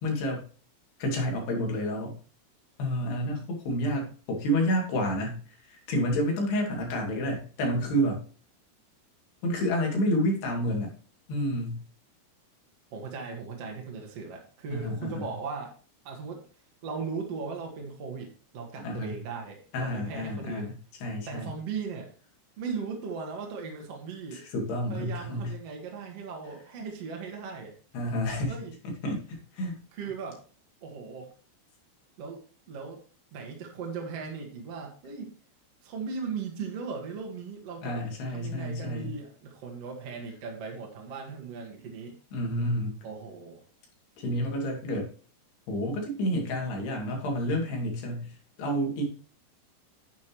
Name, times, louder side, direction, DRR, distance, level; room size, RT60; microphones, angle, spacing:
voice 1, 0.0-0.4 1.0-2.2 2.8-8.2 9.4-10.9 11.3-11.8 14.7-15.3 18.8-19.2 19.7-20.8 21.0-21.5 24.3-25.5 27.9-28.6 28.8-29.8 37.8-39.1 42.3-43.0 44.2-45.1 45.7-49.0, equal, 85° left, 1 dB, 4.5 m, -29 dB
voice 2, 12.9-15.7 16.1-16.4 16.8-20.7 21.3-22.1 22.6-24.4 24.9-27.7 28.5-28.7 29.9-30.4 30.8-31.3 32.2-32.4 32.7-33.0 33.3-35.3 35.8-38.0 38.3-42.2 43.0-43.6, right 5 dB, 55° right, 0 dB, 2.0 m, -38 dB
10.5 x 8.3 x 3.0 m, 0.40 s
omnidirectional pair, 4.5 m